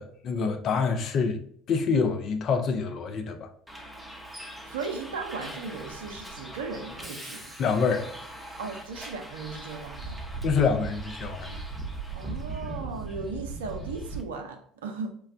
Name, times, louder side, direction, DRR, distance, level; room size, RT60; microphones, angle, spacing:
voice 1, 0.0-1.4 1.7-3.5 7.6-8.1 10.4-11.6, left 5 dB, 45° left, 0.4 m, -26 dB
Bus, 3.7-14.2, right 3 dB, 5° right, 0.7 m, -39 dB
voice 2, 4.7-7.5 8.6-10.2 12.1-15.1, right 4 dB, 70° right, 0.5 m, -37 dB
4.5 x 2.1 x 2.4 m
figure-of-eight pair, 60°, 0 cm